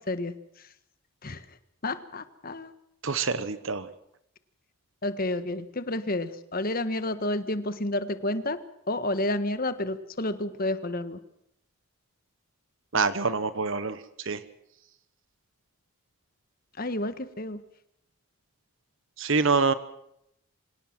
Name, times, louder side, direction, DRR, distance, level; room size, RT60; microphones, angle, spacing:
voice 1, 1.8-2.7 5.0-8.6 8.9-11.2 16.8-17.6, left 1 dB, 40° left, 11 dB, 1.5 m, -30 dB
voice 2, 3.0-3.9 12.9-14.0 14.2-14.4 19.2-19.7, right 4 dB, 60° right, 13 dB, 1.1 m, -25 dB
25.0 x 18.0 x 6.1 m, 0.74 s
head